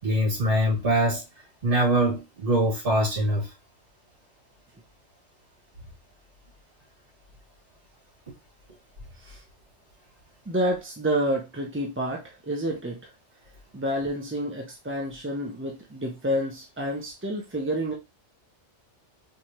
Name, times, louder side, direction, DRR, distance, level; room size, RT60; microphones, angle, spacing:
voice 1, 0.0-1.2 1.6-3.5, right 1 dB, 55° right, 2.5 m, -23 dB
voice 2, 10.5-13.0 13.7-17.9, equal, 15° right, 0.5 m, -29 dB
4.6 x 3.3 x 2.9 m
omnidirectional pair, 1.2 m